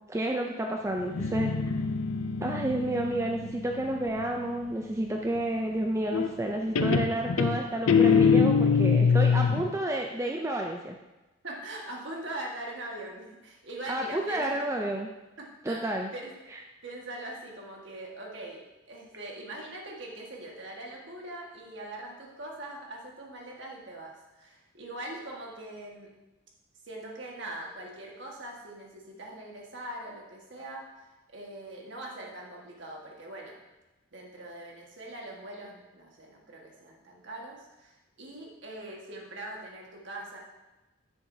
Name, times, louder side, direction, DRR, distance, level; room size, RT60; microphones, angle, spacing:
voice 1, 0.1-1.5 2.4-11.0 13.9-15.1 15.6-16.1 16.5-16.6, right 1 dB, 15° right, 1 dB, 0.4 m, -30 dB
Guitar, 1.0-4.6 6.1-6.5 6.8-9.7, left 5 dB, 85° left, 0.5 m, -24 dB
voice 2, 11.4-14.6 15.4-16.3 16.8-26.2 26.8-30.9 31.3-33.6 34.1-40.4, right 1 dB, 60° right, -2 dB, 1.6 m, -42 dB
9.6 x 6.9 x 2.7 m, 1.1 s
head